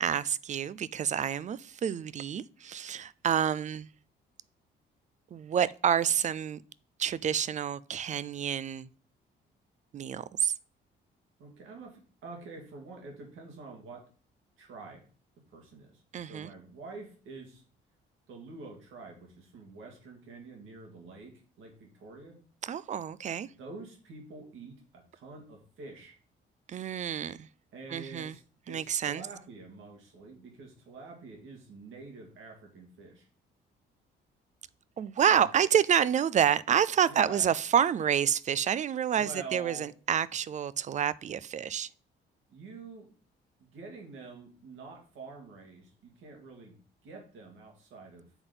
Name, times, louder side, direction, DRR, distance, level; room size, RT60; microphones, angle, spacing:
voice 1, 0.0-3.9 5.3-6.6 7.0-8.9 9.9-10.5 16.1-16.5 22.6-23.5 26.7-27.4 27.9-28.3 28.7-29.2 35.0-41.9, right 9 dB, 40° right, 0.4 m, -28 dB
voice 2, 11.4-14.0 14.6-15.0 15.5-15.9 16.2-17.6 18.3-22.4 23.4-26.2 27.7-33.3 35.2-35.5 37.0-37.5 39.1-39.9 42.5-43.1 43.6-46.8 47.0-48.3, right 3 dB, 85° right, 2.0 m, -47 dB
7.9 x 3.9 x 3.8 m
cardioid pair, 90°, 20 cm